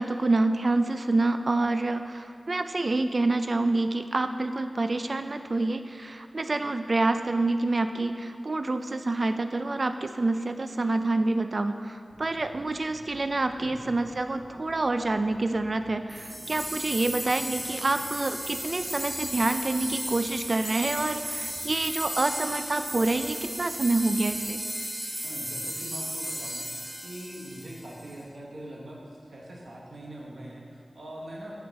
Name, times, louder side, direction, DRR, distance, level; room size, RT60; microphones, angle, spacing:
voice 1, 0.0-24.6, right 2 dB, 50° right, 9 dB, 0.3 m, -27 dB
sound 1, 12.1-24.5, right 1 dB, 85° right, 1.3 m, -52 dB
voice 2, 13.6-13.9 25.2-26.7 27.0-29.0 29.3-31.7, right 1 dB, 70° right, -3 dB, 1.2 m, -42 dB
sound 2, 16.1-28.1, equal, 30° right, 1.3 m, -35 dB
6.3 x 6.0 x 4.1 m, 2.3 s
wide cardioid pair, 80°, 0 cm